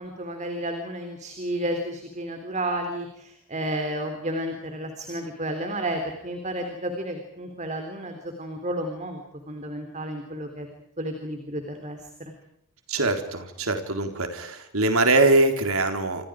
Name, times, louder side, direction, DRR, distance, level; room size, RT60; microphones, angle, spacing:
voice 1, 0.0-10.7 11.0-12.3, right 1 dB, 35° right, 5 dB, 3.7 m, -32 dB
voice 2, 12.9-16.2, right 2 dB, 75° right, 6 dB, 4.0 m, -22 dB
29.5 x 27.0 x 5.0 m, 0.78 s
head